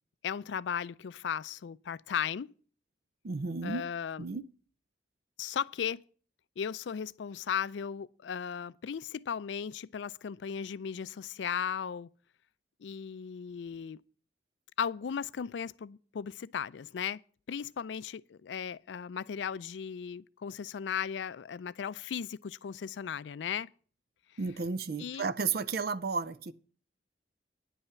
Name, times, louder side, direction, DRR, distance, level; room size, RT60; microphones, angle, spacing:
voice 1, 0.2-2.5 3.6-4.2 5.4-6.0 6.6-12.1 12.8-14.0 14.8-17.2 17.5-23.7 25.0-25.3, left 7 dB, 80° left, 0.4 m, -36 dB
voice 2, 3.2-3.8 4.2-4.4 24.4-26.5, right 4 dB, 55° right, 0.5 m, -33 dB
10.0 x 5.6 x 8.2 m
head